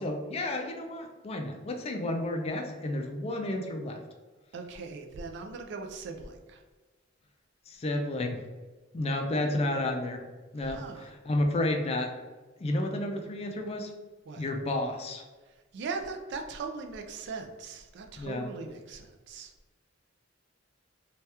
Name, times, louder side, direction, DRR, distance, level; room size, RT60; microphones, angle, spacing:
voice 1, 0.0-4.0 7.7-8.4 8.9-10.2 10.5-12.1 12.6-13.9 14.4-15.2 18.2-18.5, left 1 dB, 30° left, 4 dB, 0.3 m, -31 dB
voice 2, 4.5-6.6 10.6-11.1 14.3-14.5 15.4-19.5, right 4 dB, 60° right, 4 dB, 0.3 m, -40 dB
2.8 x 2.3 x 3.3 m, 1.3 s
head